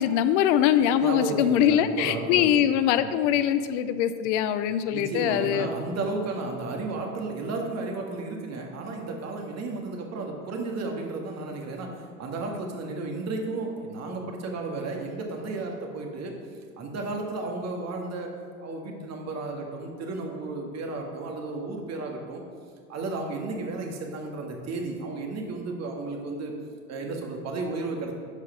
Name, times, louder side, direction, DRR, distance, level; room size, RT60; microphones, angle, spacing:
voice 1, 0.0-5.7, left 10 dB, 65° left, 12 dB, 0.6 m, -23 dB
voice 2, 0.9-2.6 3.0-3.1 4.9-16.4 16.8-22.4 22.9-26.5 26.9-28.1, right 3 dB, 40° right, 1 dB, 1.8 m, -33 dB
11.5 x 4.8 x 5.8 m, 2.1 s
hypercardioid pair, 85°, 40 cm